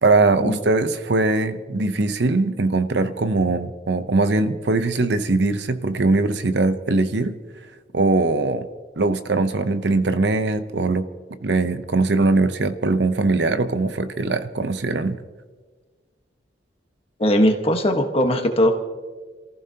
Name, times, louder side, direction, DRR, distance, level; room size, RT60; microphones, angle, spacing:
voice 1, 0.0-7.4 7.9-8.7 9.0-11.1 11.4-15.2, right 3 dB, 65° right, 10 dB, 0.8 m, -21 dB
voice 2, 17.2-18.7, equal, 30° left, 4 dB, 1.4 m, -19 dB
27.5 x 15.0 x 2.9 m, 1.4 s
head